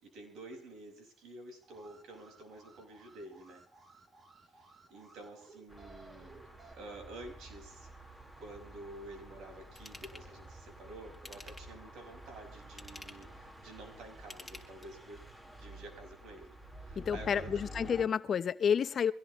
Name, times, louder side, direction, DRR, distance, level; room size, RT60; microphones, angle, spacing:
voice 1, 0.0-3.6 4.5-6.4 6.7-15.3 15.6-17.7, right 2 dB, 70° right, 5.9 m, -50 dB
Alarm, 1.6-6.7, right 3 dB, 40° right, 3.2 m, -59 dB
sound 1, 5.7-18.1, right 1 dB, 15° right, 4.5 m, -50 dB
Ratchet pawl / Tools, 9.8-10.3 11.1-11.8 12.6-13.3 14.2-15.1 15.6-15.7, left 2 dB, 10° left, 3.4 m, -50 dB
voice 2, 17.0-19.1, left 7 dB, 50° left, 0.9 m, -30 dB
23.5 x 17.0 x 3.2 m
supercardioid pair, 70°, 0 cm